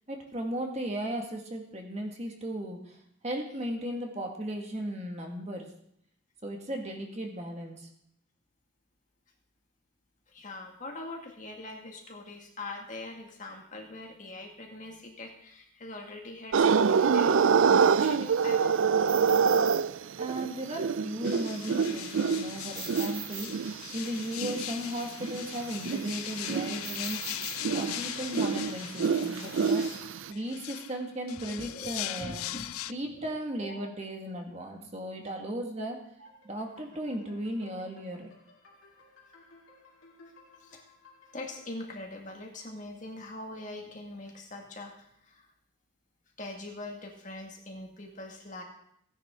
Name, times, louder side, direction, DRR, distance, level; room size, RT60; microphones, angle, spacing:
voice 1, 0.1-3.0 3.2-5.7 6.4-7.9 20.2-27.4 27.7-29.9 30.3-32.4 32.9-36.0 36.4-38.3, right 1 dB, 30° right, 2 dB, 1.8 m, -36 dB
voice 2, 10.3-18.9 20.7-20.8 31.5-32.7 33.1-33.3 33.6-33.9 36.2-36.3 40.6-40.8 41.3-45.5 46.4-48.6, left 2 dB, 35° left, 1 dB, 1.9 m, -43 dB
sound 1, 16.5-24.7 25.2-30.3, right 6 dB, 70° right, 0.4 m, -26 dB
sound 2, 21.2-32.9, left 15 dB, 90° left, 0.4 m, -40 dB
sound 3, 36.2-41.7, left 2 dB, 75° left, 2.9 m, -58 dB
17.0 x 10.5 x 3.7 m, 0.71 s
head